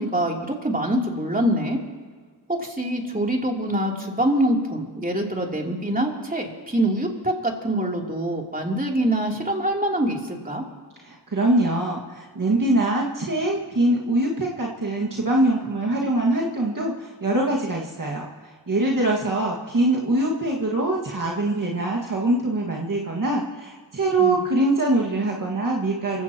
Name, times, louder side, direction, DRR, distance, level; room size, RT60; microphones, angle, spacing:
voice 1, 0.0-1.8 2.5-10.6 24.2-24.3, right 1 dB, 20° right, 0 dB, 3.2 m, -24 dB
voice 2, 11.0-26.2, right 1 dB, 50° right, -3 dB, 1.9 m, -23 dB
25.0 x 16.5 x 3.0 m, 1.5 s
cardioid pair, 45°, 42 cm